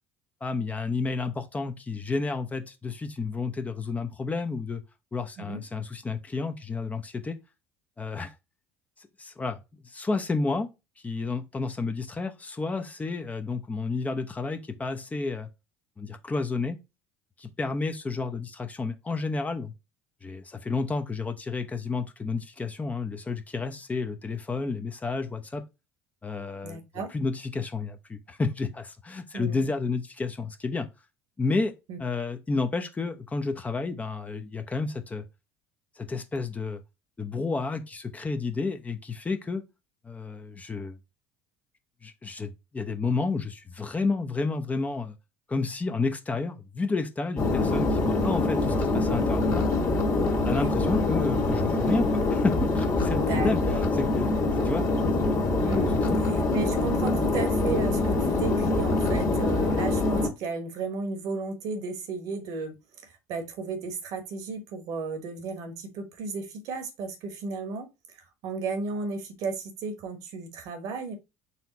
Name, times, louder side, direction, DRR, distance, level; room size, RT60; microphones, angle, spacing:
voice 1, 0.4-4.8 5.1-7.4 8.0-8.3 9.2-9.6 9.8-10.7 11.0-15.5 16.0-16.8 17.4-19.7 20.2-25.6 26.2-30.9 31.4-31.7 32.0-35.2 36.0-36.8 37.2-39.6 40.0-41.0 42.0-45.1 45.5-49.7 50.4-54.3 54.6-54.9 55.2-55.5 56.0-56.1, left 3 dB, 20° left, 0.7 m, -31 dB
voice 2, 26.6-27.1 29.3-29.7 31.9-32.0 50.5-50.7 53.3-53.9 55.6-62.7 63.0-71.1, right 4 dB, 60° right, 1.1 m, -34 dB
sound 1, 47.4-60.3, left 2 dB, 45° left, 1.6 m, -25 dB
4.3 x 3.3 x 2.9 m
hypercardioid pair, 65°, 7 cm